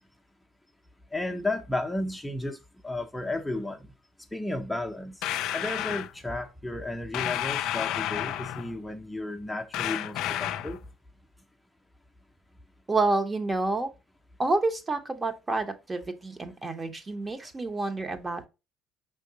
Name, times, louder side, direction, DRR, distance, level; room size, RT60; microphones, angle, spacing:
voice 1, 1.1-2.6 2.8-3.8 4.3-5.2 5.5-10.8, left 2 dB, 5° left, 0.6 m, -33 dB
sound 1, 5.2-6.1 7.1-8.7 9.7-10.8, left 12 dB, 70° left, 0.3 m, -31 dB
voice 2, 12.9-13.9 14.4-18.5, right 3 dB, 25° right, 0.9 m, -28 dB
5.2 x 3.5 x 2.8 m
hypercardioid pair, 65°, 0 cm